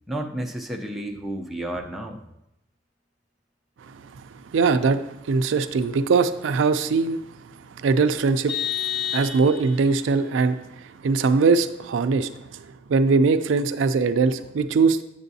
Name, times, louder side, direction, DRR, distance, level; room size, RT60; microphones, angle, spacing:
voice 1, 0.1-2.2, right 1 dB, ahead, 0 dB, 0.5 m, -31 dB
voice 2, 4.5-5.0 5.3-7.2 7.8-8.5 9.1-10.6 11.0-12.3 12.9-15.0, right 4 dB, 70° right, 9 dB, 0.4 m, -21 dB
Vehicle horn car horn honking, 8.5-9.9, left 9 dB, 60° left, 1.4 m, -29 dB
7.9 x 6.9 x 2.7 m, 0.86 s
head